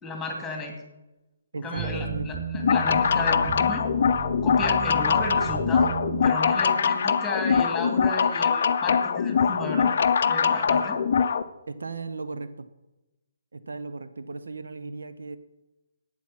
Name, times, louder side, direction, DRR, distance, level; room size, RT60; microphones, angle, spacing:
voice 1, 0.0-0.7 1.6-3.9 4.4-5.9 6.2-9.9 10.3-11.0, left 2 dB, 5° left, 2 dB, 2.4 m, -33 dB
voice 2, 1.5-2.5 11.7-12.7 13.5-15.4, right 3 dB, 65° right, 11 dB, 0.6 m, -36 dB
sound 1, 1.8-6.3, right 5 dB, 10° right, 1.3 m, -34 dB
sound 2, 2.5-11.4, left 6 dB, 50° left, 0.5 m, -23 dB
11.5 x 9.0 x 5.9 m, 0.99 s
figure-of-eight pair, 135°, 0 cm